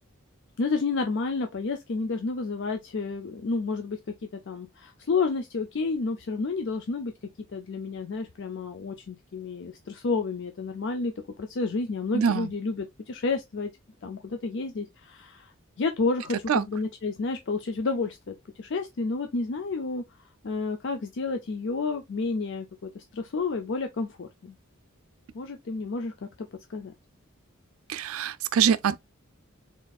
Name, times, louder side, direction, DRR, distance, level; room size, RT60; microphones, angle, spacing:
voice 1, 0.6-7.1 7.5-13.7 14.0-20.0 20.4-24.6 25.3-26.9, left 4 dB, 55° left, 0.5 m, -30 dB
voice 2, 12.1-12.5 16.5-16.6 27.9-29.0, right 7 dB, 70° right, 0.4 m, -24 dB
4.1 x 3.6 x 2.3 m
head